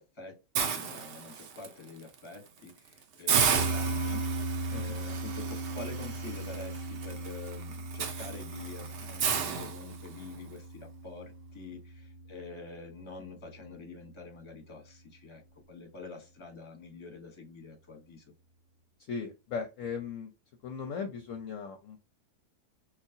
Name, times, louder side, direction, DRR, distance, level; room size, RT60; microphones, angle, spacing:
voice 1, 0.0-15.4 15.7-18.2, left 4 dB, 20° left, 0.9 m, -46 dB
Hiss, 0.5-1.7 2.1-2.3 2.7-2.8 3.3-10.3, right 6 dB, 65° right, 0.5 m, -33 dB
sound 1, 3.5-14.0, right 2 dB, 20° right, 1.2 m, -38 dB
voice 2, 19.1-20.3 20.6-22.0, left 6 dB, 65° left, 0.9 m, -37 dB
4.0 x 2.4 x 2.6 m
omnidirectional pair, 1.7 m